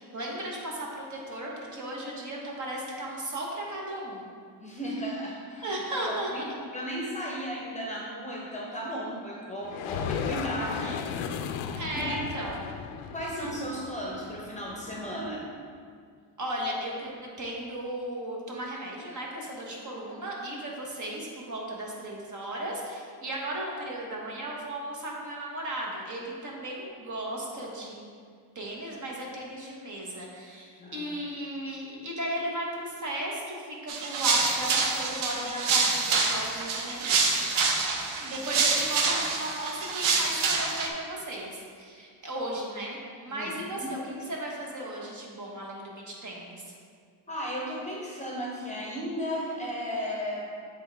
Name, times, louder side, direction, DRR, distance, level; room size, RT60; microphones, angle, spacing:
voice 1, 0.0-4.2 5.6-6.3 10.1-10.2 11.8-12.5 13.3-13.5 16.4-27.9 28.5-37.5 38.2-44.0 44.3-46.7, right 1 dB, 35° right, -2 dB, 1.2 m, -36 dB
voice 2, 4.6-5.7 6.0-6.4 6.7-11.0 11.9-12.1 13.1-15.4 30.8-31.1 43.3-43.9 47.3-50.5, equal, 15° left, -4 dB, 0.9 m, -35 dB
sound 1, 9.6-15.3, left 7 dB, 85° left, 0.5 m, -35 dB
sound 2, 33.9-40.9, right 4 dB, 80° right, 0.9 m, -27 dB
8.1 x 3.6 x 3.4 m, 2.1 s
cardioid pair, 120°, 48 cm